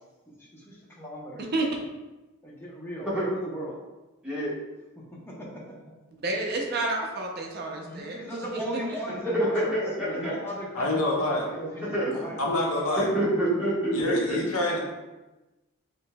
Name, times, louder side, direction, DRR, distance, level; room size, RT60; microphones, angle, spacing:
voice 1, 0.3-1.5 2.4-3.8 5.0-5.8 7.9-9.8 10.0-12.4 13.9-14.0, equal, 10° left, -5 dB, 0.8 m, -37 dB
voice 2, 4.2-4.5 9.2-10.3 11.5-11.6 11.9-12.1 13.0-14.4, right 1 dB, 5° right, -10 dB, 1.4 m, -27 dB
voice 3, 6.2-8.8, right 2 dB, 50° right, 0 dB, 0.5 m, -30 dB
voice 4, 10.7-11.5 12.4-13.1 13.9-14.8, left 1 dB, 85° left, -1 dB, 0.8 m, -26 dB
6.0 x 2.7 x 2.2 m, 1.1 s
head